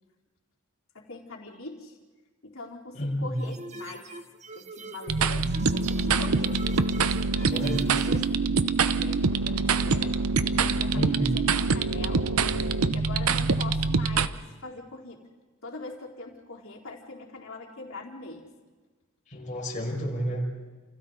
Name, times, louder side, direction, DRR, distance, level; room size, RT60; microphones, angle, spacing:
voice 1, 0.9-2.0 2.4-4.1 4.5-6.6 7.4-8.6 8.9-10.2 10.6-12.4 12.9-15.2 15.6-18.5, left 3 dB, 65° left, -1 dB, 4.1 m, -42 dB
voice 2, 2.9-3.4 7.5-7.9 10.9-11.3 19.3-20.5, equal, 35° left, -1 dB, 5.8 m, -30 dB
sound 1, 3.4-8.3, right 3 dB, 35° right, 1.1 m, -43 dB
sound 2, 5.1-14.3, right 4 dB, 85° right, 0.9 m, -25 dB
29.5 x 28.5 x 4.0 m, 1.3 s
head